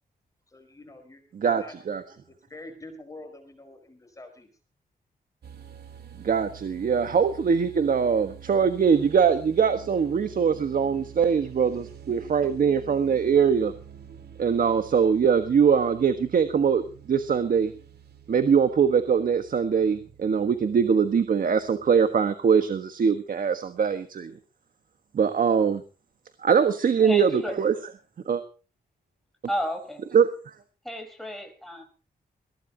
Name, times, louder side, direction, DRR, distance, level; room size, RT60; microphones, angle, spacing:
voice 1, 0.5-2.2 2.5-4.5, left 2 dB, 20° left, 5 dB, 4.9 m, -46 dB
voice 2, 1.3-2.0 6.2-13.7 14.4-16.8 17.1-17.7 18.3-24.3 25.1-25.8 26.4-27.3 27.6-27.7 28.3-28.4 30.1-30.3, right 6 dB, 60° right, 9 dB, 1.4 m, -22 dB
sound 1, 5.4-22.1, right 8 dB, 85° right, 2.4 m, -47 dB
voice 3, 27.0-27.6 29.5-30.0 30.8-31.8, equal, ahead, 3 dB, 4.6 m, -32 dB
22.0 x 16.5 x 2.9 m, 0.35 s
wide cardioid pair, 160°, 16 cm